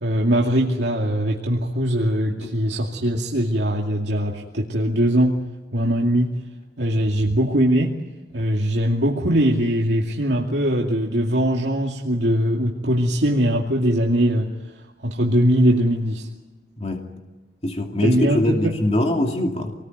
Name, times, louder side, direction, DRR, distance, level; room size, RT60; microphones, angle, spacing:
voice 1, 0.0-5.4 5.7-6.3 6.8-8.0 8.3-14.5 15.0-16.3 18.0-18.7, equal, 80° right, -2 dB, 2.5 m, -21 dB
voice 2, 16.8-17.1 17.6-19.7, left 1 dB, 35° left, 2 dB, 2.6 m, -23 dB
27.0 x 20.0 x 9.4 m, 1.1 s
head